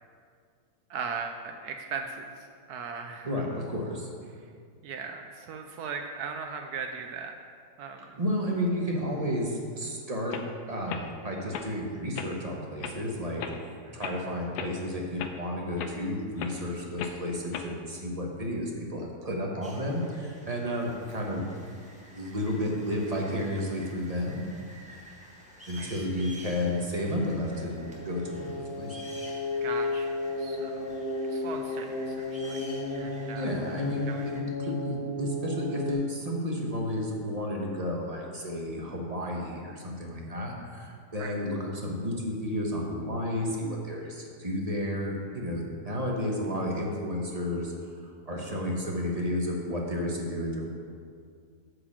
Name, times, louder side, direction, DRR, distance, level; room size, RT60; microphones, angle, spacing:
voice 1, 0.9-3.3 4.8-7.3 7.8-8.1 13.8-13.9 25.8-26.4 29.6-30.9 31.3-32.7 32.9-33.5 34.1-34.3 41.2-41.3, right 5 dB, 75° right, 5 dB, 1.1 m, -38 dB
voice 2, 3.2-4.1 8.2-10.4 10.7-13.4 13.9-21.4 22.1-24.5 25.7-29.0 33.3-34.3 34.7-47.7 48.0-50.7, left 1 dB, 25° right, -1 dB, 1.1 m, -32 dB
sound 1, 9.8-9.9 10.3-10.5 10.9-11.1 11.5-11.7 12.1-12.3 12.8-13.0 13.4-13.6 14.0-14.2 14.5-14.7 15.2-15.4 15.8-15.9 16.4-16.6 17.0-17.2 17.5-17.7, left 7 dB, 80° left, 1.2 m, -37 dB
sound 2, 19.6-34.4, equal, 5° right, 1.2 m, -51 dB
sound 3, 26.6-35.9, left 2 dB, 25° left, 0.8 m, -34 dB
8.5 x 5.0 x 7.3 m, 2.1 s
omnidirectional pair, 1.8 m